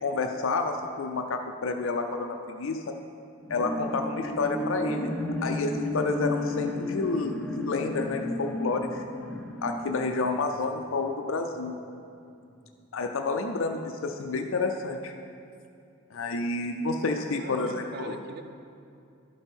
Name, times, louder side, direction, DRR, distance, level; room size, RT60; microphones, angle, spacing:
voice 1, 0.0-3.0 3.5-5.1 5.4-9.0 9.6-11.7 12.9-15.1 16.1-18.2, left 3 dB, 65° left, 4 dB, 0.5 m, -29 dB
sound 1, 3.4-11.2 11.6-11.7, left 1 dB, 5° left, 0.5 m, -33 dB
voice 2, 17.1-18.4, right 3 dB, 45° right, 7 dB, 0.5 m, -42 dB
11.5 x 5.2 x 4.4 m, 2.5 s
head